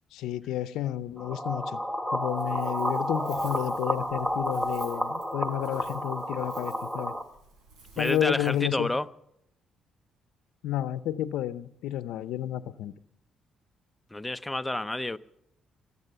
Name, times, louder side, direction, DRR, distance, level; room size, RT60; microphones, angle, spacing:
voice 1, 0.1-1.8 2.1-7.1 8.0-8.9 10.6-12.9, left 12 dB, 90° left, 0.6 m, -31 dB
sound 1, 1.2-7.2, equal, 15° right, 1.5 m, -31 dB
Wind, 2.2-8.7, right 3 dB, 90° right, 5.0 m, -54 dB
voice 2, 8.0-9.1 14.1-15.2, left 2 dB, 10° left, 0.5 m, -29 dB
24.5 x 8.3 x 6.8 m
cardioid pair, 90°, 0 cm